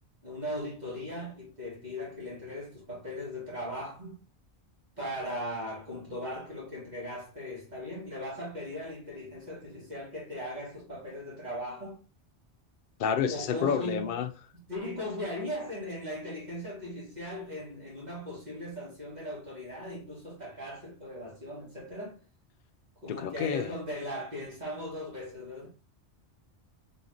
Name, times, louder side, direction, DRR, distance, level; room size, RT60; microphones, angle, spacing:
voice 1, 0.2-4.2 5.0-12.0 13.3-14.1 14.7-22.2 23.0-25.7, left 1 dB, 40° right, 2.0 m, -38 dB
voice 2, 13.0-14.3 23.1-23.7, left 7 dB, 60° left, 0.6 m, -29 dB
4.0 x 3.8 x 2.9 m
omnidirectional pair, 1.1 m